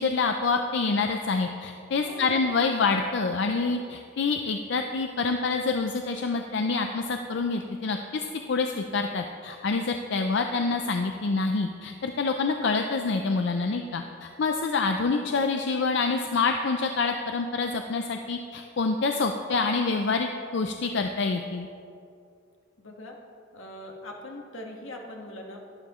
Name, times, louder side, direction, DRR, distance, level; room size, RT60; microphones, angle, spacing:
voice 1, 0.0-21.7, left 4 dB, 60° left, 5 dB, 0.5 m, -27 dB
voice 2, 2.0-2.4 22.8-23.2 23.5-25.6, left 1 dB, 80° left, 1 dB, 1.5 m, -41 dB
12.0 x 11.5 x 3.1 m, 2.4 s
head